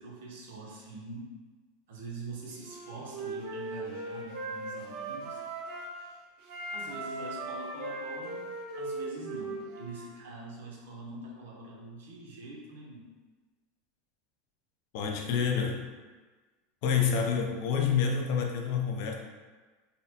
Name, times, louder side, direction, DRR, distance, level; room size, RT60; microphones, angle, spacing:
voice 1, 0.0-1.3 1.9-5.4 6.7-8.5 8.8-13.0, right 2 dB, 85° right, -3 dB, 0.9 m, -44 dB
Wind instrument woodwind instrument, 2.6-6.0 6.4-10.1, right 2 dB, 50° right, 0.7 m, -38 dB
voice 2, 14.9-15.9 16.8-19.1, left 6 dB, 50° left, 2 dB, 0.4 m, -28 dB
4.0 x 2.2 x 2.8 m, 1.3 s
supercardioid pair, 170°, 0 cm